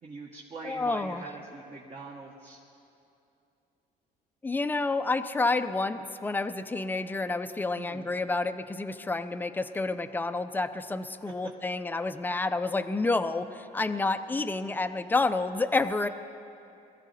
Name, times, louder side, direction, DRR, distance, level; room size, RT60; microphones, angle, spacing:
voice 1, 0.0-2.6 7.8-8.1 11.4-11.5, right 3 dB, 40° right, -2 dB, 1.5 m, -43 dB
voice 2, 0.6-1.3 4.4-16.1, left 3 dB, 10° left, 10 dB, 0.6 m, -29 dB
21.5 x 14.0 x 4.2 m, 2.7 s
cardioid pair, 110°, 17 cm